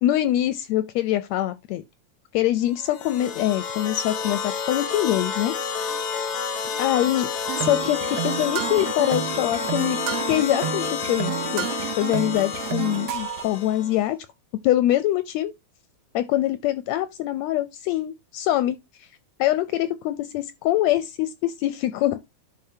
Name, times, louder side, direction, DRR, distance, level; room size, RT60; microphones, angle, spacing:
voice 1, 0.0-1.8 2.3-5.5 6.8-7.3 7.6-10.0 10.3-11.7 12.0-14.2 14.6-15.5 16.1-18.8 19.4-22.2, left 14 dB, 80° left, 1.7 m, -24 dB
sound 1, 2.8-14.0, left 6 dB, 65° left, 1.0 m, -30 dB
sound 2, 7.5-13.4, right 13 dB, 70° right, 1.7 m, -30 dB
11.5 x 4.5 x 2.7 m
omnidirectional pair, 3.4 m